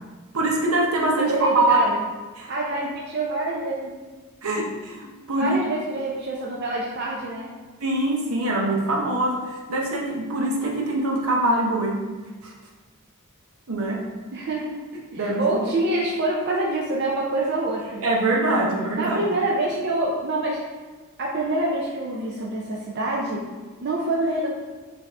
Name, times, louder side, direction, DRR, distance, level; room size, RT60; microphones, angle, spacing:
voice 1, 0.3-1.9 2.4-2.5 4.4-5.6 7.8-12.0 12.4-12.5 13.7-14.0 15.1-15.4 18.0-19.2, right 2 dB, 80° right, -1 dB, 0.9 m, -23 dB
voice 2, 1.2-2.0 2.5-3.9 5.4-7.5 14.3-14.8 15.1-18.1 19.0-20.6 21.2-23.4 23.8-24.5, right 2 dB, 50° right, -3 dB, 0.5 m, -26 dB
5.5 x 2.7 x 3.6 m, 1.3 s
head